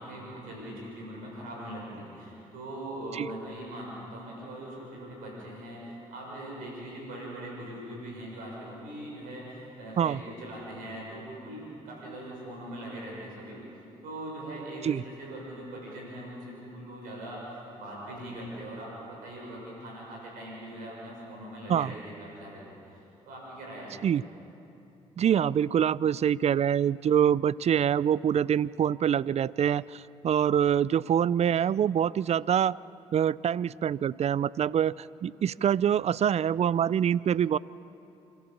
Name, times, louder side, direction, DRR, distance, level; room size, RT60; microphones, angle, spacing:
voice 1, 0.0-13.6 14.0-24.1, right 1 dB, 85° right, -3 dB, 6.5 m, -41 dB
voice 2, 25.2-32.8 33.1-37.6, right 9 dB, 50° right, 22 dB, 0.4 m, -25 dB
27.0 x 13.0 x 7.2 m, 2.8 s
supercardioid pair, 55°, 14 cm